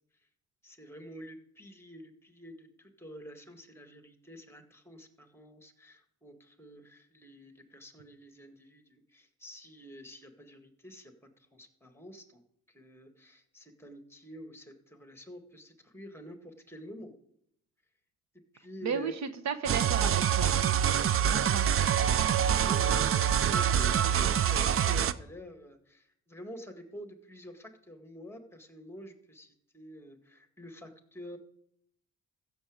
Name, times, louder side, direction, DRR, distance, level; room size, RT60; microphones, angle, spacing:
voice 1, 0.6-12.4 12.7-17.1 18.5-19.1 21.0-21.6 22.4-31.4, equal, 10° left, 6 dB, 1.9 m, -48 dB
voice 2, 18.8-20.6 21.3-21.6, right 6 dB, 65° right, 9 dB, 1.1 m, -34 dB
sound 1, 19.7-25.1, right 9 dB, 45° right, 0.6 m, -26 dB
15.0 x 7.1 x 5.0 m, 0.72 s
cardioid pair, 90°, 30 cm